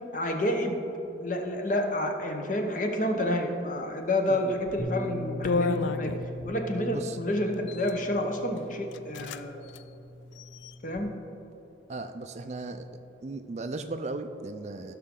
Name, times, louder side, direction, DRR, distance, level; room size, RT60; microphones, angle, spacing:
voice 1, 0.1-0.8 1.2-6.1 6.4-9.6 10.8-11.1, left 1 dB, 45° left, 3 dB, 0.9 m, -29 dB
sound 1, 4.6-4.8 5.4-6.6 7.5-8.0 8.6-8.7 8.9-9.4 9.7-9.8 10.3-11.0, left 4 dB, 75° left, 0.3 m, -32 dB
Bass guitar, 4.8-11.0, left 1 dB, 5° left, 1.4 m, -40 dB
voice 2, 6.8-7.2 11.9-12.9 13.2-15.0, right 3 dB, 35° right, 8 dB, 0.4 m, -36 dB
16.0 x 6.0 x 3.8 m, 3.0 s
head